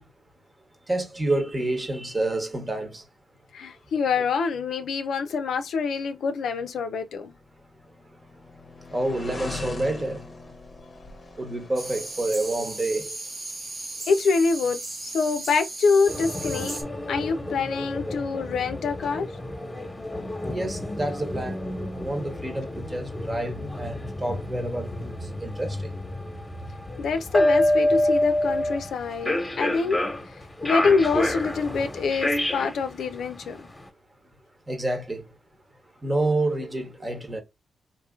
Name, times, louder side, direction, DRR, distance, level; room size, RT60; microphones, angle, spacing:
voice 1, 0.9-3.0 8.9-10.2 11.4-13.2 20.5-21.6 21.9-25.1 25.4-25.9 34.7-35.2 36.0-37.4, right 2 dB, 30° right, 1.2 m, -28 dB
voice 2, 3.5-7.3 14.1-16.8 17.1-19.3 27.0-30.0 30.6-33.7, left 5 dB, 75° left, 0.5 m, -25 dB
sound 1, 7.6-12.6, left 3 dB, 45° left, 0.7 m, -40 dB
sound 2, 11.8-16.8, right 2 dB, 45° right, 1.0 m, -36 dB
sound 3, 16.1-33.8, left 1 dB, 20° left, 1.1 m, -28 dB
3.0 x 2.6 x 2.3 m
supercardioid pair, 45°, 0 cm